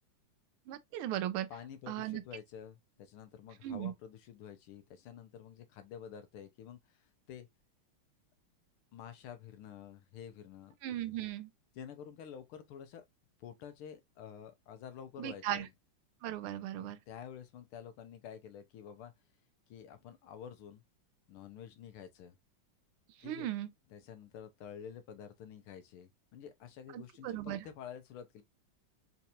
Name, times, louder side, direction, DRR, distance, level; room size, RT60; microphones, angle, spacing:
voice 1, 0.7-1.5 1.9-2.2 3.6-3.9 10.8-11.5 15.2-15.7 16.2-17.0 23.2-23.7 26.9-27.6, right 12 dB, 85° right, 1.5 m, -37 dB
voice 2, 1.5-7.5 8.9-10.8 11.7-13.0 13.4-15.7 16.7-19.1 19.7-20.8 21.3-22.4 23.2-23.5 23.9-28.4, left 8 dB, 85° left, 1.7 m, -49 dB
4.4 x 2.9 x 2.4 m
omnidirectional pair, 2.4 m